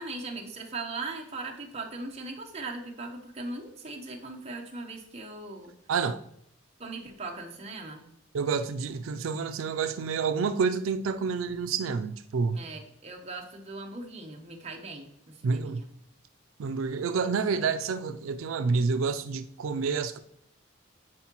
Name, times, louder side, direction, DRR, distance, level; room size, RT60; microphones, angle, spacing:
voice 1, 0.0-5.7 6.8-8.0 12.5-15.9, right 3 dB, 30° right, 0.9 m, -39 dB
voice 2, 8.3-12.6 15.4-15.8 16.6-20.2, right 5 dB, 90° right, 0.4 m, -28 dB
9.6 x 4.5 x 3.0 m
head